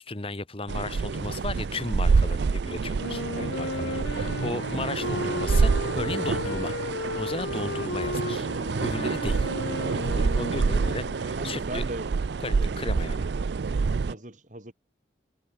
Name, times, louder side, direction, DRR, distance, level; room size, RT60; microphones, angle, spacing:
voice 1, 0.0-6.7 7.1-8.5 8.8-9.5 9.9-11.8 12.4-13.2, left 2 dB, 30° left, 1.3 m, -35 dB
sound 1, 0.7-14.1, right 4 dB, 70° right, 0.4 m, -27 dB
Wind instrument woodwind instrument, 2.9-11.5, left 3 dB, 75° left, 1.1 m, -34 dB
voice 2, 3.3-4.0 11.3-12.1 12.5-13.3 13.7-14.7, right 1 dB, 45° right, 4.3 m, -41 dB
head